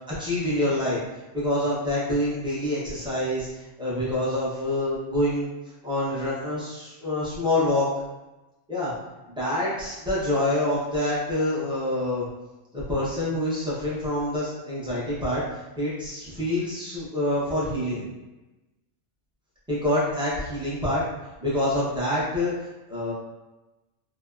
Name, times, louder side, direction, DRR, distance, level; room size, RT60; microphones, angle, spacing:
voice 1, 0.2-1.0 1.3-3.5 3.8-5.5 5.8-7.9 8.7-8.9 9.3-12.3 12.7-15.4 15.8-18.1 19.7-21.0 21.4-22.5 22.9-23.1, left 1 dB, 5° right, -9 dB, 0.5 m, -26 dB
2.9 x 2.0 x 2.4 m, 1.1 s
omnidirectional pair, 1.3 m